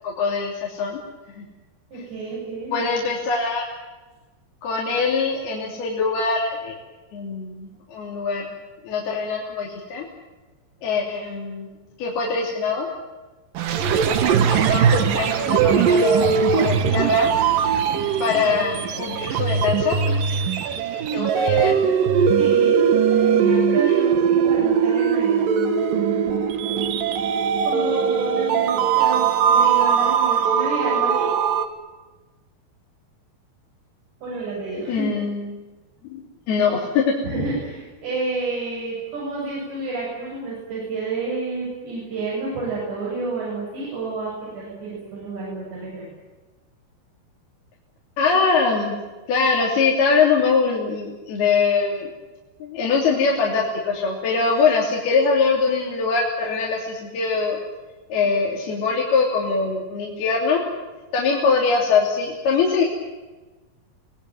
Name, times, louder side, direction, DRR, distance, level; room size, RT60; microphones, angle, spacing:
voice 1, 0.0-1.0 1.4-1.5 1.9-2.0 2.7-3.6 4.6-6.8 7.1-8.6 8.8-10.0 10.8-11.7 12.0-12.9 14.4-17.3 18.2-20.0 21.1-21.8 34.9-35.6 36.1-37.1 48.2-49.0 49.3-52.1 52.6-57.6 58.1-60.6 61.1-62.9, left 5 dB, 65° left, -3 dB, 4.9 m, -22 dB
voice 2, 1.9-2.9 22.4-26.3 27.7-31.3 34.2-35.1 37.2-46.0, right 3 dB, 90° right, -6 dB, 10.5 m, -30 dB
sound 1, 13.6-31.7, right 7 dB, 60° right, 2.8 m, -20 dB
27.0 x 19.5 x 9.4 m, 1.2 s
omnidirectional pair, 4.8 m